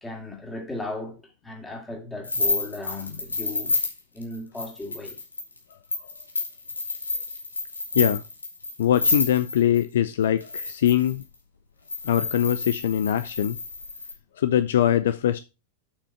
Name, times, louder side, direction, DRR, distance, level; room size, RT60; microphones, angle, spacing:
voice 1, 0.0-3.7 4.1-5.2, left 2 dB, 10° left, 2.6 m, -36 dB
sound 1, 2.2-9.8 10.4-11.2 11.9-14.1, left 3 dB, 80° left, 2.1 m, -29 dB
voice 2, 8.8-11.2 12.0-13.6 14.4-15.4, left 10 dB, 60° left, 0.5 m, -22 dB
8.2 x 6.2 x 4.4 m
figure-of-eight pair, 90°, 0 cm